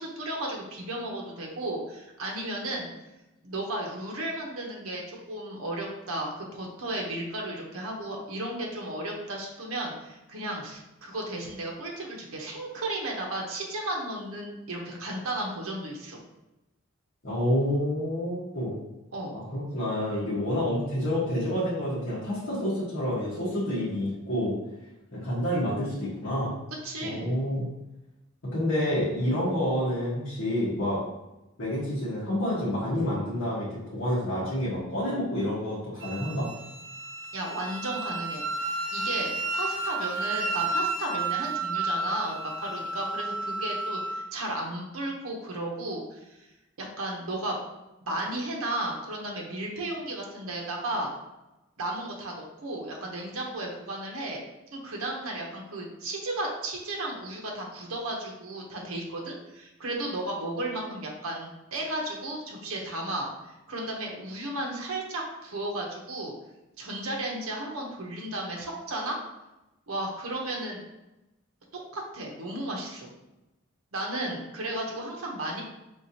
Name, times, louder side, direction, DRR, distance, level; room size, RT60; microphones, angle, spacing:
voice 1, 0.0-2.9 3.4-16.2 19.1-19.4 26.8-27.3 37.3-38.4 38.9-46.4 46.8-47.6 48.1-51.1 51.8-54.4 54.7-66.3 66.8-69.2 69.9-70.8 71.9-73.1 73.9-75.6, right 1 dB, 85° right, -1 dB, 0.8 m, -34 dB
voice 2, 17.2-18.8 19.3-24.5 25.1-26.6 27.0-27.7 28.4-31.0 31.6-33.7 33.9-36.5, left 1 dB, 65° left, -11 dB, 1.4 m, -28 dB
Wind instrument woodwind instrument, 36.0-44.2, right 2 dB, 60° right, 0.6 m, -32 dB
4.7 x 3.4 x 2.8 m, 0.98 s
head